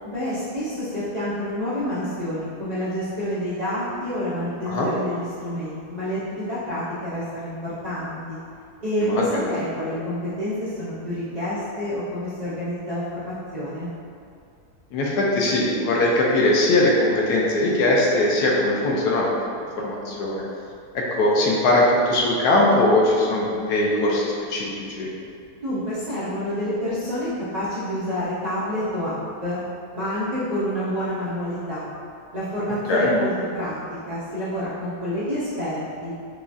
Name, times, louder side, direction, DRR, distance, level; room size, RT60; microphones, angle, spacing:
voice 1, 0.0-8.4 8.8-13.9 25.6-29.6 29.9-31.9 32.3-33.8 34.1-36.1, equal, 55° right, -13 dB, 0.4 m, -28 dB
voice 2, 9.0-9.5 14.9-19.3 19.6-20.4 21.2-25.1 32.9-33.1, left 1 dB, 80° left, -3 dB, 1.2 m, -20 dB
4.8 x 2.3 x 2.6 m, 2.4 s
omnidirectional pair, 1.8 m